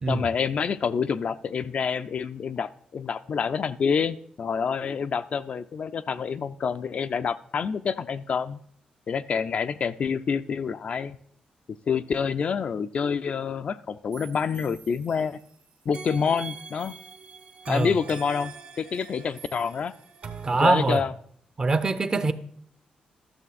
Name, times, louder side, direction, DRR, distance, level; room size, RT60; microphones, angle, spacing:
voice 1, 0.1-8.6 9.1-11.2 11.9-15.4 15.9-17.0 17.7-19.9 20.5-21.1, left 6 dB, 50° left, 0.4 m, -27 dB
sound 1, 14.1-15.5 15.9-21.0, right 5 dB, 55° right, 0.9 m, -43 dB
voice 2, 20.4-21.0 21.6-22.3, right 3 dB, 30° right, 0.6 m, -23 dB
12.5 x 6.6 x 4.1 m
cardioid pair, 110°, 3 cm